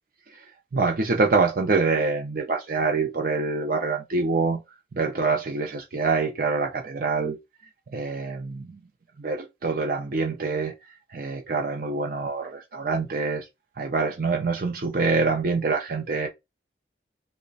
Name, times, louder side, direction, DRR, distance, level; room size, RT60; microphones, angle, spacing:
voice 1, 0.7-4.6 4.9-7.4 7.9-8.8 9.2-10.7 11.1-13.5 13.8-16.3, right 4 dB, 50° right, 0.5 m, -25 dB
3.2 x 2.1 x 3.7 m
head